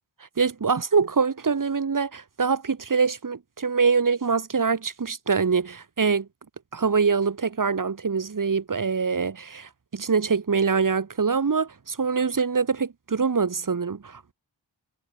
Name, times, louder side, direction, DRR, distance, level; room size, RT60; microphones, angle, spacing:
voice 1, 0.4-6.3 6.7-14.3, right 5 dB, 40° right, 0.9 m, -24 dB
wide cardioid pair, 45°, 47 cm